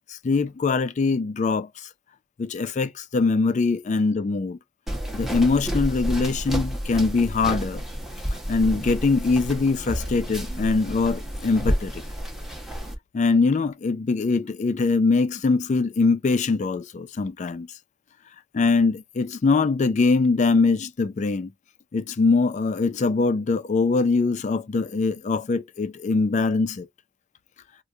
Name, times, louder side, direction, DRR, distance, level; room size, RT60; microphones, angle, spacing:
voice 1, 0.1-1.9 2.4-4.6 5.1-7.8 8.5-12.0 13.1-17.7 18.5-21.5 21.9-26.9, left 4 dB, 40° left, 0.3 m, -22 dB
sound 1, 4.9-12.9, equal, ahead, 1.3 m, -30 dB
4.7 x 2.1 x 2.6 m
head